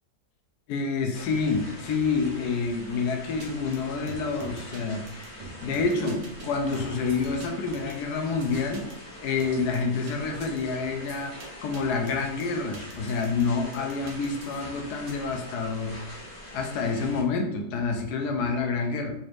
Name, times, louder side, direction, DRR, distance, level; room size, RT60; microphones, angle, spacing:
voice 1, 0.7-5.0 5.6-8.9 9.2-16.0 16.5-19.1, left 4 dB, 70° left, 4 dB, 1.0 m, -28 dB
sound 1, 1.1-17.2, left 1 dB, 45° left, 0.7 m, -44 dB
sound 2, 3.4-3.5 3.7-3.8 4.1-4.8 5.1-6.5 6.7-8.9 9.4-10.1 10.4-10.6 11.1-11.5 11.7-11.8 12.1-13.4 13.7-15.1, right 3 dB, 75° right, 1.4 m, -44 dB
4.1 x 2.5 x 3.1 m, 0.78 s
omnidirectional pair, 1.9 m